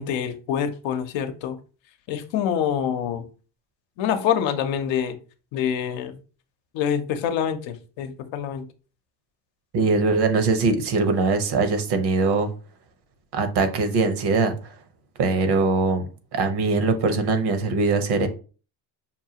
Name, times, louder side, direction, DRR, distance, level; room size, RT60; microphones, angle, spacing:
voice 1, 0.0-1.6 2.1-3.2 4.0-5.2 5.5-6.2 6.7-8.6, left 8 dB, 70° left, 0.8 m, -26 dB
voice 2, 9.7-12.5 13.3-14.7 15.2-16.0 16.3-18.3, right 3 dB, 55° right, 1.0 m, -22 dB
5.6 x 2.3 x 2.8 m
supercardioid pair, 95°, 47 cm